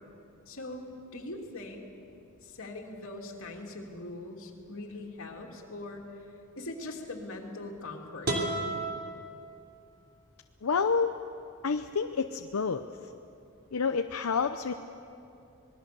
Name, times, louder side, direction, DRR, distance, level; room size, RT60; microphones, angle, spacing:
voice 1, 0.5-1.9 2.4-6.1 6.6-8.3, left 2 dB, 70° left, 0 dB, 3.0 m, -41 dB
sound 1, 8.2-10.2, right 2 dB, 50° right, 3.3 m, -34 dB
voice 2, 10.6-11.1 11.6-12.8 13.7-14.7, left 5 dB, 90° left, 7 dB, 0.7 m, -28 dB
26.0 x 20.5 x 6.9 m, 2.6 s
head